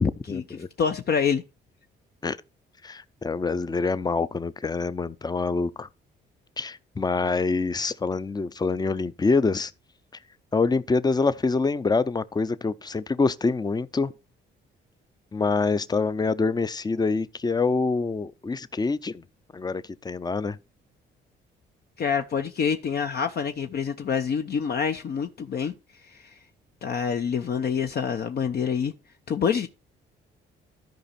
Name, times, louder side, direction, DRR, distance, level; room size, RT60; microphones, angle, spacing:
voice 1, 0.0-0.7 2.2-2.4 2.8-5.9 6.6-9.7 10.5-14.1 15.3-19.2 19.5-20.6, left 4 dB, 20° left, 0.6 m, -26 dB
voice 2, 0.8-1.4 22.0-25.7 26.1-26.3 26.8-28.9 29.3-29.7, left 6 dB, 55° left, 0.8 m, -26 dB
13.5 x 5.1 x 4.2 m
cardioid pair, 90°, 20 cm